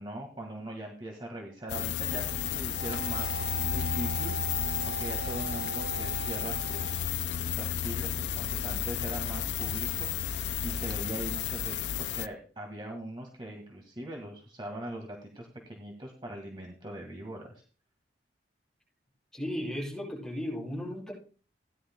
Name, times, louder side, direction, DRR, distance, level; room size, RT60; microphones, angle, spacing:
voice 1, 0.0-3.4 3.7-17.6, right 1 dB, 30° right, 1 dB, 1.8 m, -41 dB
sound 1, 1.7-12.3, left 9 dB, 85° left, 0.4 m, -32 dB
sound 2, 2.0-7.1, right 5 dB, 70° right, 3.9 m, -39 dB
voice 2, 19.3-21.1, left 1 dB, 5° left, -5 dB, 7.2 m, -35 dB
17.0 x 11.0 x 2.3 m, 0.40 s
head